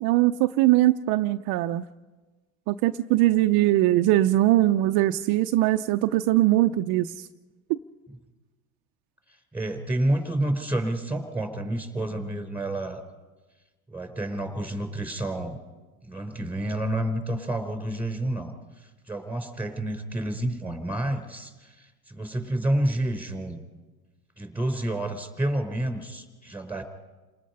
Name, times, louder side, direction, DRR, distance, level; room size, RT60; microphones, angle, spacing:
voice 1, 0.0-1.8 2.7-7.3 7.7-7.8, right 15 dB, 55° right, 7 dB, 0.7 m, -21 dB
voice 2, 9.5-13.0 13.9-15.6 16.0-18.5 18.8-23.6 24.4-26.8, right 1 dB, 5° right, 8 dB, 4.0 m, -29 dB
29.5 x 19.5 x 5.5 m, 1.2 s
supercardioid pair, 100°, 43 cm